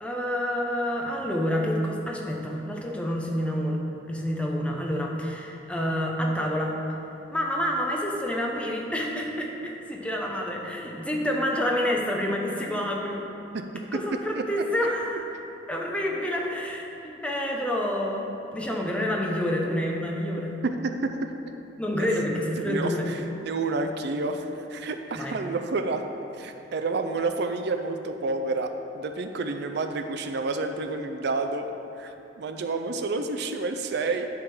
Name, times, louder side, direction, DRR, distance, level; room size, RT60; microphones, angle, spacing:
voice 1, 0.0-3.8 4.1-6.8 7.3-13.2 13.9-15.2 15.7-20.6 21.8-23.1 25.1-25.4, equal, 5° left, -1 dB, 0.9 m, -28 dB
voice 2, 20.6-21.1 21.9-22.1 22.6-24.4 24.7-26.0 26.4-31.7 32.0-34.3, right 3 dB, 65° right, 7 dB, 0.4 m, -29 dB
11.0 x 3.7 x 6.0 m, 2.9 s
head